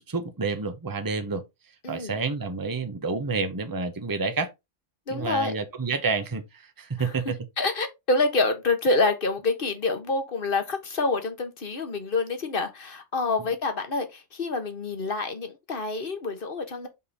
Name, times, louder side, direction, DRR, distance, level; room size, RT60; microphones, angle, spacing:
voice 1, 0.0-1.4 1.9-4.5 5.1-7.4, right 4 dB, 20° right, 0.9 m, -29 dB
voice 2, 1.8-2.2 5.1-5.5 7.0-7.1 7.6-16.9, left 3 dB, 50° left, 1.6 m, -27 dB
5.6 x 5.0 x 4.2 m
omnidirectional pair, 1.2 m